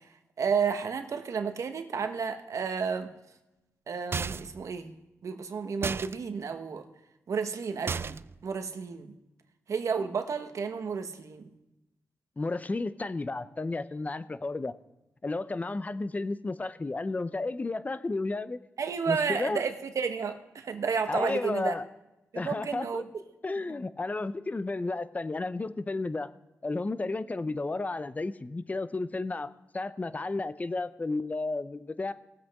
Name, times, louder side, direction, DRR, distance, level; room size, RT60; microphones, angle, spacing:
voice 1, 0.4-3.1 3.9-4.9 5.2-6.8 7.3-8.2 8.4-9.1 9.7-11.5 18.8-21.7 22.3-23.0, right 6 dB, 70° right, 7 dB, 1.2 m, -31 dB
sound 1, 4.1-4.6 5.8-6.1 7.9-8.4, right 5 dB, 45° right, 0.3 m, -33 dB
voice 2, 12.4-14.7 15.2-18.6 19.1-19.6 21.1-21.9 22.3-23.0 23.4-26.3 26.6-32.1, left 3 dB, 25° left, 14 dB, 0.6 m, -32 dB
19.5 x 7.8 x 3.6 m, 0.96 s
cardioid pair, 75°, 6 cm